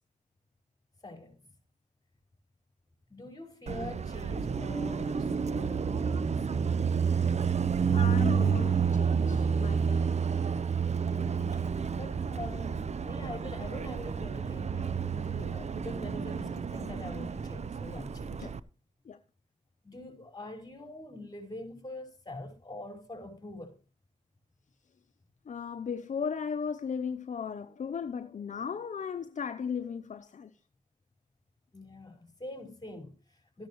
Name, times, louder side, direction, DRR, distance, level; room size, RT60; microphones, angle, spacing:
voice 1, 1.0-1.4 3.1-6.7 11.0-18.5 19.8-23.8 31.7-33.7, left 2 dB, 30° left, 5.2 m, -44 dB
Car passing by, 3.7-18.6, right 6 dB, 55° right, 0.7 m, -30 dB
voice 2, 7.9-10.1 18.4-18.5 19.1-19.2 25.5-30.5, left 6 dB, 65° left, 0.7 m, -36 dB
Acoustic guitar, 13.5-18.0, right 2 dB, ahead, 5.8 m, -52 dB
14.0 x 10.5 x 3.1 m
cardioid pair, 55°, 13 cm